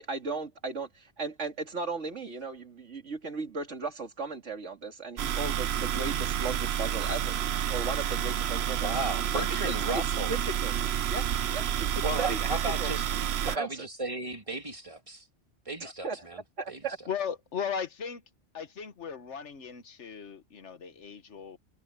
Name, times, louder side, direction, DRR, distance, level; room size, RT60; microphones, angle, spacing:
voice 1, 0.0-7.4 7.7-8.9 9.3-9.4 10.3-10.7 11.1-11.9 12.2-12.4 12.8-12.9 13.4-13.8 15.8-16.3 16.6-17.0, right 4 dB, 80° right, 2.7 m, -36 dB
sound 1, 5.2-13.6, right 9 dB, 65° right, 0.9 m, -29 dB
voice 2, 8.8-10.4 12.0-13.0 13.4-15.3 15.7-16.4 16.7-16.8, right 2 dB, 30° right, 2.6 m, -34 dB
voice 3, 17.1-18.2 18.5-21.6, left 7 dB, 75° left, 1.5 m, -37 dB
omnidirectional pair, 1.2 m